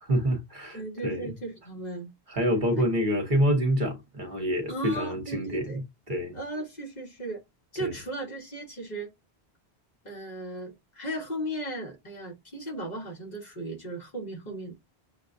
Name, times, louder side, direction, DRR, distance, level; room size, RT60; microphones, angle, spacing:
voice 1, 0.0-1.4 2.3-6.4 7.8-8.0, equal, 50° right, 1.2 m, -27 dB
voice 2, 0.7-2.1 2.7-2.9 4.7-5.8 6.3-7.4 7.7-9.1 10.0-14.7, right 1 dB, 45° left, 1.3 m, -36 dB
6.7 x 2.3 x 2.6 m
omnidirectional pair, 1.1 m